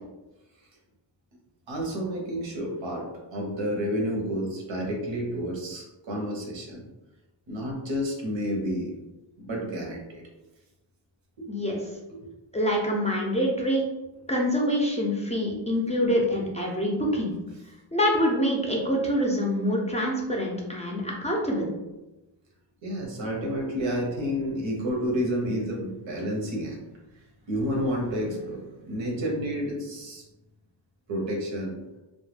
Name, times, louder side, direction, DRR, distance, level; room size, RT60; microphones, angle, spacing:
voice 1, 1.7-6.9 7.5-9.0 9.4-10.2 11.4-11.5 12.2-12.3 15.8-15.9 22.8-26.8 27.5-30.2 31.1-31.8, equal, 85° right, -1 dB, 0.8 m, -30 dB
voice 2, 11.5-11.8 12.5-13.8 14.3-17.3 17.9-21.7, equal, 15° left, -2 dB, 0.4 m, -25 dB
2.2 x 2.1 x 3.1 m, 1.0 s
wide cardioid pair, 100°, 45 cm